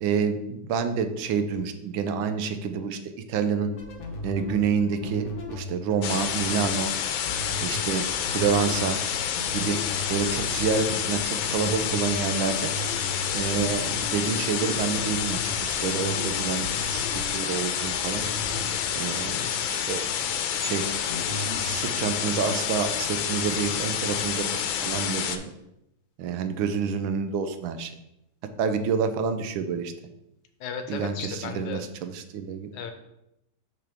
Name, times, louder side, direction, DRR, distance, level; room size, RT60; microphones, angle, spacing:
voice 1, 0.0-3.7 4.2-6.9 7.6-9.0 9.5-9.8 10.1-12.7 13.3-17.0 17.3-18.2 19.0-20.0 20.6-20.9 21.4-25.5 26.2-27.9 28.6-29.9 30.9-32.7, right 6 dB, 85° right, 9 dB, 1.5 m, -28 dB
sound 1, 3.7-23.2, left 1 dB, 50° left, 1.1 m, -38 dB
sound 2, 6.0-25.4, left 8 dB, 90° left, 1.4 m, -29 dB
voice 2, 19.4-19.7 30.6-31.8 32.7-32.9, left 6 dB, 75° left, 7 dB, 1.3 m, -35 dB
6.1 x 5.9 x 3.5 m, 0.85 s
omnidirectional pair, 2.2 m